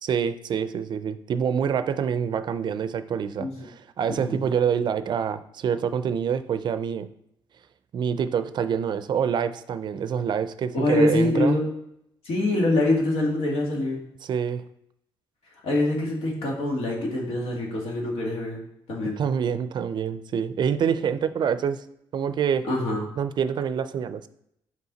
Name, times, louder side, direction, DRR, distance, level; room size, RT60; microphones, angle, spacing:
voice 1, 0.0-7.1 7.9-11.6 14.2-14.6 19.2-21.8 22.1-22.7 23.2-24.3, right 7 dB, 50° right, 12 dB, 0.4 m, -26 dB
voice 2, 3.4-3.7 4.1-4.4 10.7-11.7 12.2-14.0 15.6-18.6 18.9-19.2 22.6-23.1, left 2 dB, 85° left, -2 dB, 1.7 m, -24 dB
5.6 x 4.6 x 3.9 m, 0.76 s
cardioid pair, 135°, 10 cm